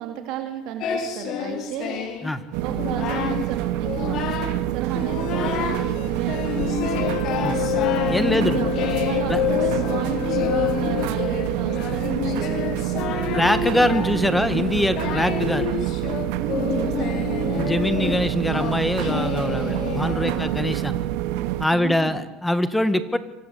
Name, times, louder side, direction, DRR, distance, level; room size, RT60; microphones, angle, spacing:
voice 1, 0.0-2.0 2.6-7.1 8.2-8.7 9.0-13.3 16.4-17.4 20.2-20.6 21.7-22.2, right 10 dB, 65° right, 5 dB, 3.7 m, -33 dB
Singing, 0.8-2.3 2.7-3.5 3.8-4.6 5.0-5.8 6.3-20.8, left 7 dB, 50° left, 5.0 m, -29 dB
sound 1, 2.5-21.6, right 14 dB, 80° right, 2.3 m, -27 dB
sound 2, 4.9-15.2 15.6-15.7, left 15 dB, 75° left, 2.1 m, -29 dB
voice 2, 8.1-8.6 9.3-9.4 13.3-15.7 17.6-21.0 21.6-23.2, left 1 dB, 5° left, 12 dB, 2.0 m, -23 dB
28.0 x 25.0 x 8.6 m, 1.0 s
cardioid pair, 135°, 0 cm